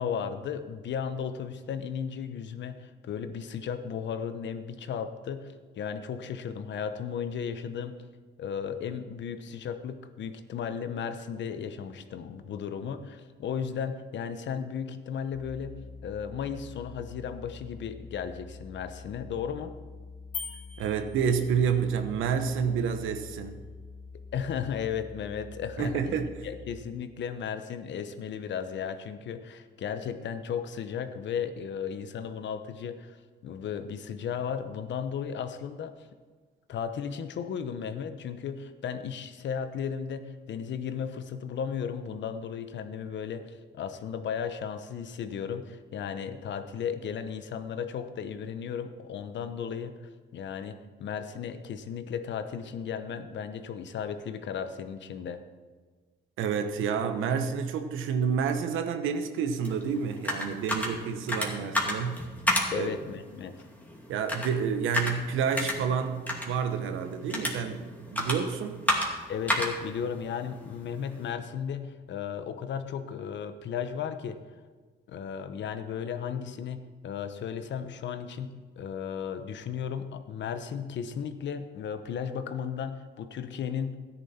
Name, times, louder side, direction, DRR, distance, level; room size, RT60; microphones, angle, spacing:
voice 1, 0.0-7.9 8.4-15.8 16.0-19.7 24.3-33.2 33.4-36.1 36.7-49.9 50.3-55.4 62.7-63.5 69.3-74.4 75.1-84.0, left 7 dB, 65° left, 1.0 m, -35 dB
sound 1, 15.3-26.8, left 4 dB, 40° right, 2.6 m, -46 dB
sound 2, 20.3-21.9, left 5 dB, 35° left, 1.1 m, -41 dB
voice 2, 20.8-23.6 25.8-26.3 56.4-62.3 62.7-62.9 64.1-68.8, right 6 dB, 85° right, 1.1 m, -29 dB
sound 3, 59.6-71.3, left 1 dB, 10° left, 2.4 m, -33 dB
13.5 x 10.0 x 4.3 m
cardioid pair, 90°, 20 cm